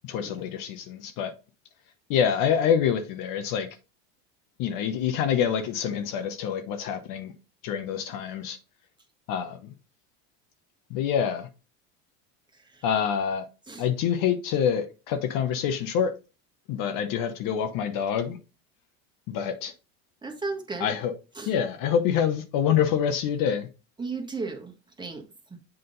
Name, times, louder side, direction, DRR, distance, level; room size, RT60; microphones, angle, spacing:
voice 1, 0.0-1.3 2.1-3.7 4.6-7.3 7.6-8.6 9.3-9.6 10.9-11.5 12.8-13.5 13.8-16.1 16.7-18.4 19.3-19.7 20.8-21.1 21.5-23.7, left 8 dB, 55° left, 1.0 m, -26 dB
voice 2, 20.2-20.9 21.3-21.5 24.0-24.7 25.0-25.2 25.5-25.6, right 3 dB, 10° right, 1.4 m, -34 dB
7.9 x 3.8 x 3.9 m
supercardioid pair, 110°, 38 cm